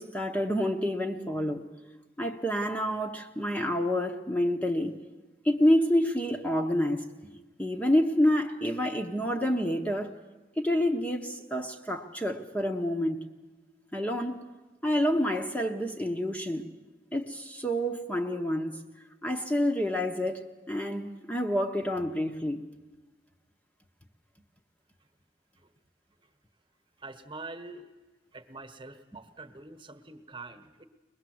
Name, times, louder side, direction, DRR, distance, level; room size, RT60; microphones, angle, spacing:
voice 1, 0.0-1.7 2.2-5.0 5.4-7.0 7.6-10.2 10.6-13.2 13.9-14.4 14.8-16.7 17.1-18.8 19.2-22.6, equal, 10° left, 0.9 m, -28 dB
voice 2, 27.0-27.9 28.3-30.8, right 3 dB, 25° right, 1.3 m, -45 dB
22.5 x 20.5 x 7.8 m
head